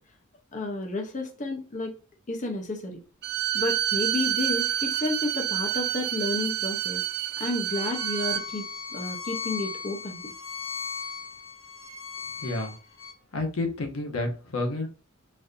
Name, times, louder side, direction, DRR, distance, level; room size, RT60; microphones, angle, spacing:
voice 1, 0.5-2.0 2.3-3.0 3.5-7.0 7.4-10.2, left 2 dB, 35° left, 2 dB, 0.6 m, -31 dB
Bowed string instrument, 3.2-8.4, right 12 dB, 50° right, 0.3 m, -28 dB
Bowed string instrument 2, 7.7-13.1, left 6 dB, 50° left, 1.4 m, -37 dB
voice 2, 12.4-12.8 13.3-14.9, left 2 dB, 80° left, 3 dB, 0.8 m, -30 dB
4.1 x 2.5 x 2.5 m, 0.35 s
head